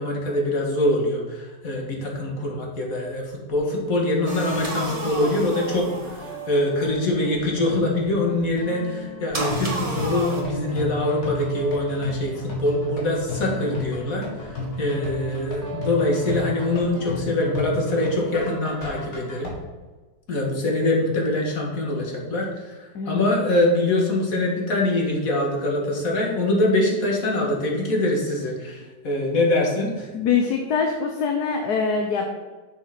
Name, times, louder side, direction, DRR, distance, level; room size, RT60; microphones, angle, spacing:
voice 1, 0.0-19.5 20.3-22.7 23.1-30.1, left 1 dB, 55° left, -1 dB, 2.2 m, -24 dB
Guitar, 3.3-3.6 4.6-17.2, right 2 dB, 65° right, 2.7 m, -39 dB
sound 1, 4.3-6.7 9.3-10.4, right 2 dB, 20° right, 1.4 m, -31 dB
sound 2, 9.5-19.5, left 1 dB, 85° left, 2.7 m, -32 dB
voice 2, 30.1-32.3, left 5 dB, 70° left, 3 dB, 1.4 m, -23 dB
7.0 x 6.5 x 5.9 m, 1.3 s
omnidirectional pair, 1.8 m